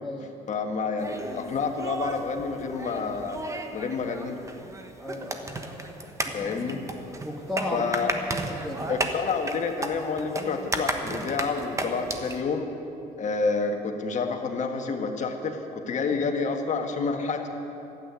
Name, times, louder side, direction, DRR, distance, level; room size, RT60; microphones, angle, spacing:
voice 1, 0.5-3.4 3.7-4.4 6.3-6.8 7.7-8.1 8.9-12.7 13.2-17.5, left 4 dB, 45° left, 4 dB, 1.5 m, -29 dB
sound 1, 1.0-12.4, right 2 dB, 20° right, 1.1 m, -34 dB
voice 2, 5.0-5.6 6.2-6.8 7.2-8.9, left 1 dB, ahead, -2 dB, 1.6 m, -35 dB
12.5 x 8.6 x 9.3 m, 2.9 s
cardioid pair, 110°, 17 cm